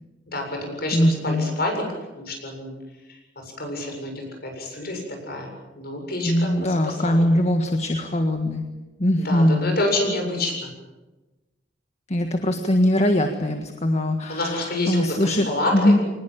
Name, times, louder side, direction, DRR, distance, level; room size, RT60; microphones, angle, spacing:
voice 1, 0.3-2.8 3.1-7.3 9.2-10.7 14.3-16.0, left 1 dB, 60° left, 3 dB, 7.6 m, -28 dB
voice 2, 0.9-1.5 6.2-8.6 9.0-9.7 12.1-15.5 15.7-16.0, left 1 dB, 40° left, 5 dB, 1.7 m, -21 dB
23.5 x 20.0 x 8.8 m, 1.1 s
head